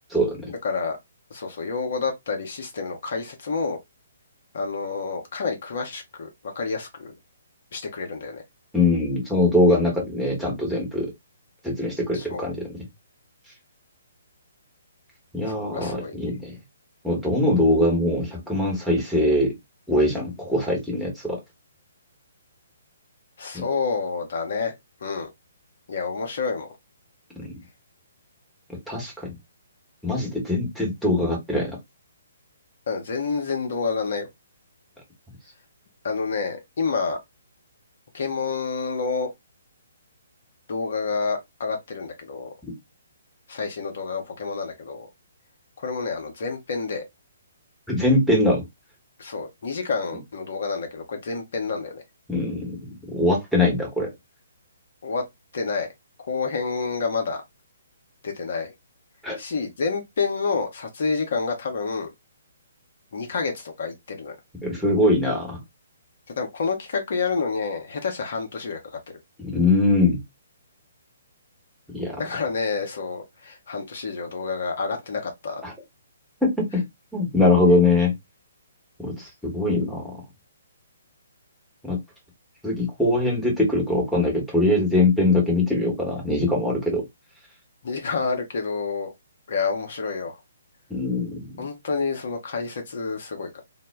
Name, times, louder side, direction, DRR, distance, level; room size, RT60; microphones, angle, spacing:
voice 1, 0.1-0.5 8.7-11.1 11.6-12.6 15.3-16.6 17.0-19.5 19.9-21.4 28.9-29.3 30.0-31.8 47.9-48.6 52.3-54.1 59.2-59.4 64.6-65.6 69.4-70.2 71.9-72.2 75.6-75.7 76.4-76.8 77.1-78.1 79.0-80.1 81.8-82.0 82.6-87.0 90.9-91.6, left 2 dB, ahead, 1.0 m, -22 dB
voice 2, 0.6-1.0 1.3-3.8 4.5-6.3 6.6-7.1 7.7-8.4 12.1-12.5 15.4-16.2 23.4-24.7 25.0-25.3 25.9-26.7 32.9-34.3 36.0-37.2 38.1-39.3 40.7-42.5 43.5-45.1 45.8-47.0 49.2-52.0 55.0-55.2 55.5-55.9 56.3-57.4 58.2-58.7 59.4-62.1 63.1-64.4 66.4-68.8 72.2-75.6 87.8-89.1 89.5-90.4 91.6-93.6, left 4 dB, 50° left, 0.6 m, -28 dB
2.0 x 2.0 x 3.3 m
figure-of-eight pair, 130°, 0 cm